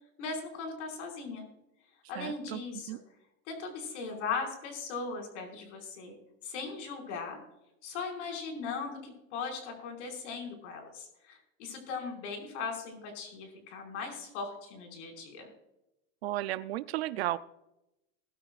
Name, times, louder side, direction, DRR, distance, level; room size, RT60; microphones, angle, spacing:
voice 1, 0.2-1.5 2.1-3.0 3.5-6.1 6.4-7.4 7.8-15.5, left 4 dB, 60° left, 3 dB, 5.3 m, -38 dB
voice 2, 2.2-2.6 2.9-3.0 16.2-17.4, right 15 dB, 50° right, 15 dB, 0.4 m, -33 dB
21.0 x 12.0 x 2.4 m, 0.89 s
supercardioid pair, 180°, 40 cm